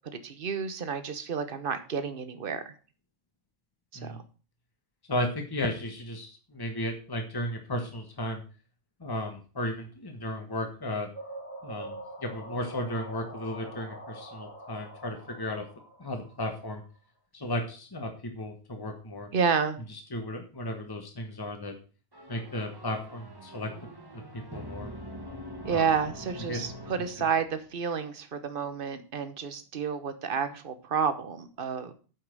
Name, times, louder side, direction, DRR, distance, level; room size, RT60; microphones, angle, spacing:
voice 1, 0.2-2.6 4.0-4.2 19.3-19.8 25.6-31.9, right 6 dB, 55° right, 10 dB, 1.3 m, -30 dB
voice 2, 5.1-8.4 9.0-11.1 11.6-15.6 16.0-16.8 17.3-19.3 20.1-21.7 22.3-23.7 24.1-24.9 25.7-25.9 26.5-26.6 27.2-27.3, left 1 dB, 20° left, 4 dB, 1.4 m, -34 dB
sound 1, 11.1-16.9, right 1 dB, 50° left, 4.3 m, -44 dB
sound 2, 22.1-27.7, equal, 20° right, 1.3 m, -44 dB
8.9 x 5.8 x 6.7 m, 0.37 s
omnidirectional pair, 1.1 m